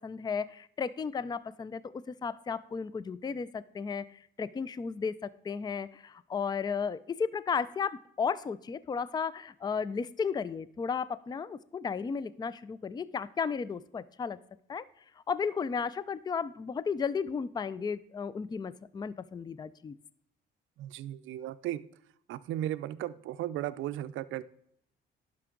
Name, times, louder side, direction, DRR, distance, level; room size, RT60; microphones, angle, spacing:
voice 1, 0.0-14.4 14.7-14.9 15.3-20.0, left 6 dB, 20° left, 18 dB, 0.4 m, -34 dB
voice 2, 20.8-21.8 22.3-24.4, right 13 dB, 80° right, 13 dB, 0.4 m, -35 dB
10.5 x 6.0 x 3.7 m, 0.69 s
cardioid pair, 90°, 20 cm